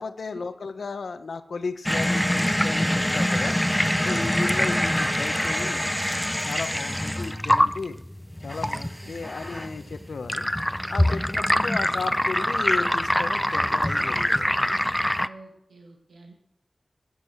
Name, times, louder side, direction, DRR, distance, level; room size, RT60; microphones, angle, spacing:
voice 1, 0.0-3.6 4.0-8.0 8.4-10.5 10.9-14.8, left 4 dB, 85° left, 11 dB, 0.8 m, -35 dB
sound 1, 1.9-15.3, equal, 5° left, 0.5 m, -24 dB
voice 2, 4.1-4.4 8.7-9.3 11.1-11.5 15.2-16.3, right 3 dB, 85° right, 1 dB, 1.6 m, -46 dB
15.0 x 7.5 x 7.3 m, 0.80 s
wide cardioid pair, 65°, 0 cm